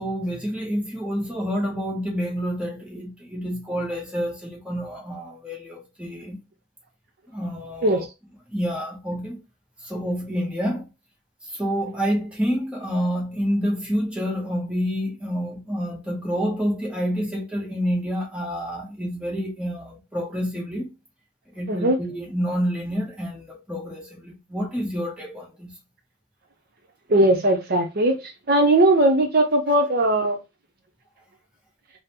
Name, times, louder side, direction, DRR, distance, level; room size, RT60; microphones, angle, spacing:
voice 1, 0.0-6.4 7.3-8.0 8.5-9.4 9.8-10.9 11.6-20.9 21.6-25.7, equal, 5° right, 1.0 m, -28 dB
voice 2, 21.7-22.0 27.1-28.2 28.5-30.4, right 1 dB, 45° right, 0.6 m, -19 dB
3.7 x 2.0 x 4.3 m
head